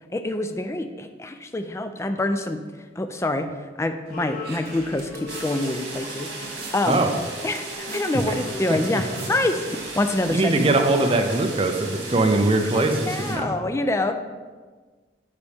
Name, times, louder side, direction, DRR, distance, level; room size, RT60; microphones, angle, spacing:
voice 1, 0.1-2.6 3.0-6.3 6.7-7.0 7.4-10.5 12.7-14.1, left 2 dB, 15° left, 7 dB, 0.3 m, -26 dB
sound 1, 4.1-9.5 9.8-9.9, left 3 dB, 50° left, 1.1 m, -40 dB
sound 2, 4.1-11.0, right 2 dB, 55° right, 1.4 m, -43 dB
sound 3, 5.3-13.4, right 3 dB, 75° right, 1.8 m, -37 dB
voice 2, 10.3-13.5, right 2 dB, 30° right, 4 dB, 0.6 m, -21 dB
9.7 x 4.1 x 3.4 m, 1.4 s
head